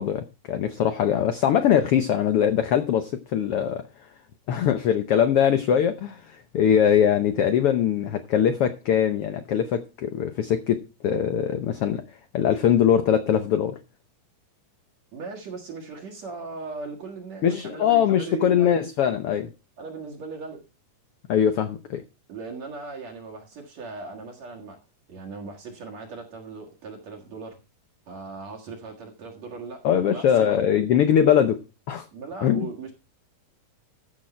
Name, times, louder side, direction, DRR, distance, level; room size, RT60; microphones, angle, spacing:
voice 1, 0.0-3.8 4.5-12.0 12.3-13.8 17.4-19.5 21.3-22.0 29.8-31.6 31.9-32.1 32.4-32.7, left 9 dB, 85° left, 1.2 m, -22 dB
voice 2, 15.1-18.7 19.8-20.6 22.3-24.8 25.1-27.6 28.1-30.5 32.1-32.9, right 4 dB, 60° right, 2.7 m, -38 dB
14.0 x 6.5 x 4.4 m
omnidirectional pair, 3.8 m